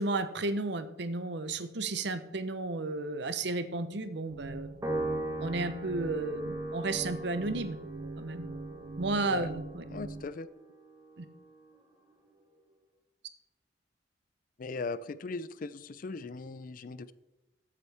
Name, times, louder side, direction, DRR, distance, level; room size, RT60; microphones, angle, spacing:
voice 1, 0.0-4.7 5.4-7.8 8.2-8.5 9.0-9.8 11.2-11.3, right 2 dB, 65° right, 11 dB, 0.8 m, -33 dB
sound 1, 4.3-10.3, right 2 dB, 40° right, 0.5 m, -43 dB
Piano, 4.8-11.4, right 2 dB, 20° right, 1.4 m, -39 dB
voice 2, 9.9-10.5 14.6-17.1, left 3 dB, 45° left, 16 dB, 0.4 m, -39 dB
13.5 x 8.6 x 3.5 m, 0.99 s
head